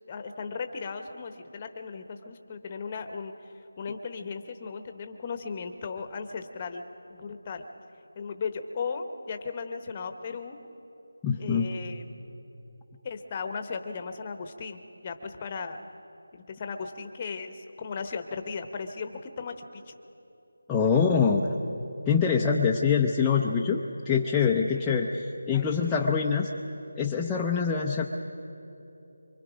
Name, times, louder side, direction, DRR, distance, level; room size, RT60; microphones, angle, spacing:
voice 1, 0.1-6.8 7.1-7.6 8.1-10.6 11.4-12.0 13.0-15.8 16.3-20.0 20.8-20.9 25.5-25.7, left 5 dB, 20° left, 7 dB, 0.9 m, -36 dB
voice 2, 11.2-11.7 20.7-21.6 22.1-26.5 27.0-28.0, left 6 dB, 5° left, -3 dB, 0.5 m, -24 dB
24.5 x 24.0 x 5.1 m, 3.0 s
figure-of-eight pair, 170°, 0 cm